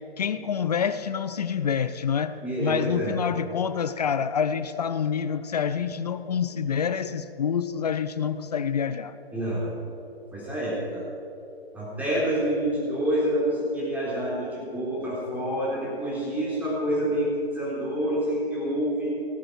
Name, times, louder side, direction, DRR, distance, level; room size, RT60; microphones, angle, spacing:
voice 1, 0.0-9.2, left 7 dB, 40° left, 13 dB, 0.5 m, -27 dB
voice 2, 2.4-3.1 9.3-9.7 10.3-11.1 11.7-19.1, right 1 dB, 5° right, -7 dB, 3.6 m, -27 dB
17.5 x 7.7 x 6.3 m, 2.7 s
figure-of-eight pair, 130°, 31 cm